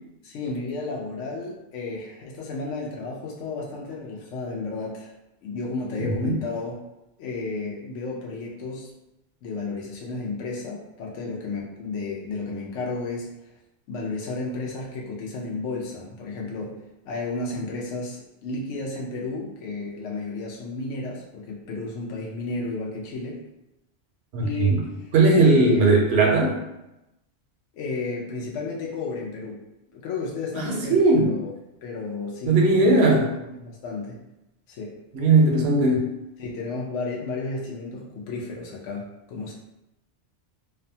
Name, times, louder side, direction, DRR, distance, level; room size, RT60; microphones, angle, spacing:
voice 1, 0.2-5.1 5.4-6.8 7.2-8.9 9.4-13.3 13.9-23.4 24.4-25.9 27.7-29.6 29.9-31.5 31.8-33.2 33.5-34.2 34.7-35.0 36.4-39.5, left 3 dB, 90° left, -3 dB, 0.9 m, -32 dB
voice 2, 6.0-6.4 24.3-24.8 25.1-26.6 30.6-31.3 32.5-33.2 35.1-36.1, right 3 dB, 70° right, -1 dB, 0.8 m, -18 dB
2.5 x 2.1 x 2.6 m, 0.91 s
omnidirectional pair, 1.2 m